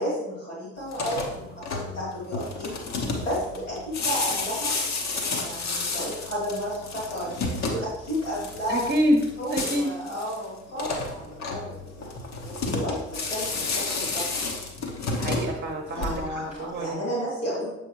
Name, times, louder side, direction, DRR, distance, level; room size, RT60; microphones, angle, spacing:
voice 1, 0.0-4.7 5.4-8.9 9.4-12.1 12.4-14.4 16.0-17.7, equal, 90° left, -9 dB, 1.9 m, -32 dB
sound 1, 0.8-16.5, left 3 dB, 50° left, 1.1 m, -31 dB
voice 2, 8.7-9.2 9.5-9.9 15.0-17.0, equal, 30° right, 2 dB, 1.0 m, -26 dB
7.1 x 5.2 x 3.0 m, 0.93 s
figure-of-eight pair, 40°, 36 cm